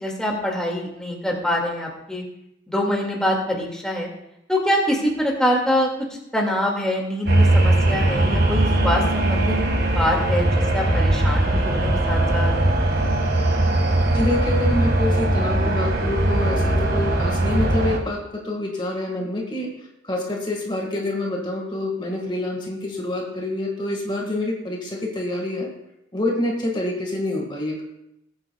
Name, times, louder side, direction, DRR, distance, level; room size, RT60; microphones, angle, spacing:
voice 1, 0.0-2.2 2.7-4.1 4.5-9.6 9.8-12.5, equal, 5° left, -2 dB, 1.9 m, -24 dB
sound 1, 7.3-18.0, right 1 dB, 60° right, 1.6 m, -20 dB
voice 2, 14.1-19.7 20.0-25.7 26.1-27.8, left 1 dB, 25° left, 0 dB, 1.5 m, -27 dB
19.5 x 8.8 x 2.2 m, 0.82 s
head